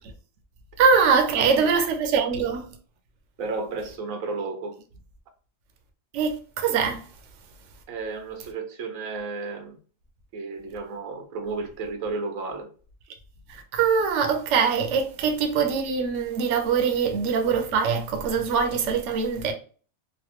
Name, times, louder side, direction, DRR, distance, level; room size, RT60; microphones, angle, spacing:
voice 1, 0.8-2.7 6.1-7.0 13.5-19.5, right 6 dB, 65° right, 0.9 m, -23 dB
voice 2, 1.4-1.9 3.4-4.8 7.9-9.7 10.3-12.7, right 4 dB, 90° right, 1.1 m, -33 dB
3.1 x 2.6 x 2.9 m
omnidirectional pair, 1.4 m